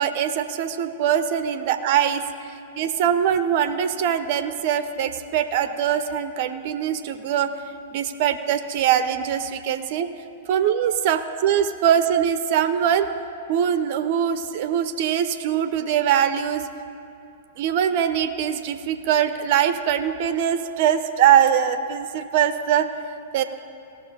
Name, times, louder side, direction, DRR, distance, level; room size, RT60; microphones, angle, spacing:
voice 1, 0.0-2.2 2.8-7.5 7.9-10.1 10.5-13.1 13.5-16.7 17.6-22.9 23.3-23.4, right 9 dB, 45° right, 11 dB, 0.5 m, -22 dB
16.5 x 6.7 x 5.1 m, 2.5 s
figure-of-eight pair, 100°, 0 cm